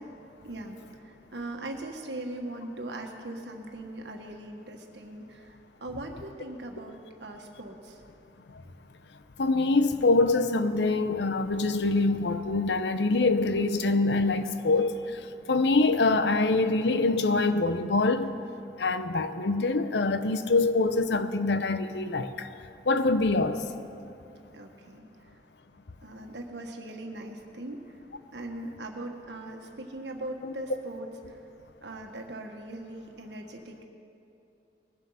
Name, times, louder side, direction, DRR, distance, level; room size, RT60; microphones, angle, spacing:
voice 1, 0.4-5.5 5.8-8.0 24.5-25.1 26.0-27.8 28.3-31.4 31.8-33.8, right 1 dB, 80° right, 1.5 m, -40 dB
voice 2, 9.4-15.2 15.5-18.3 18.8-22.5 22.9-23.7 30.4-30.5, left 3 dB, 75° left, 0.7 m, -25 dB
20.5 x 7.3 x 5.7 m
head